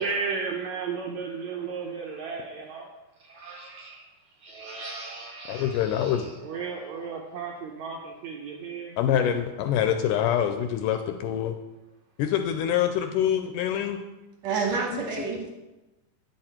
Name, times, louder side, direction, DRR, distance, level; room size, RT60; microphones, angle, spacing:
voice 1, 0.0-2.9 3.2-4.1 4.4-9.0, right 5 dB, 75° right, 0 dB, 1.7 m, -35 dB
voice 2, 5.5-6.3 9.0-11.6 12.2-14.0, left 9 dB, 80° left, 7 dB, 1.9 m, -25 dB
voice 3, 14.4-15.5, right 4 dB, 60° right, 0 dB, 2.1 m, -28 dB
8.9 x 6.5 x 4.3 m, 1.0 s
omnidirectional pair, 4.0 m